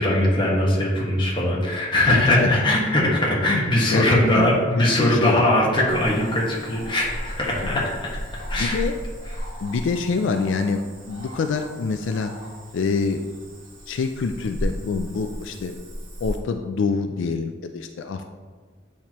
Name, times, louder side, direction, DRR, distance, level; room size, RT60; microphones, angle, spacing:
voice 1, 0.0-8.2 8.5-8.8, left 1 dB, 25° left, -4 dB, 1.4 m, -21 dB
voice 2, 2.1-2.5 3.9-4.0 4.3-5.5 7.7-7.8 8.5-8.9 9.6-12.3 12.7-13.2 13.9-15.8 16.2-18.2, left 4 dB, 75° left, 6 dB, 0.3 m, -26 dB
Cricket / Frog, 5.9-16.4, equal, 90° right, 1.6 m, -35 dB
8.4 x 4.3 x 3.0 m, 1.5 s
head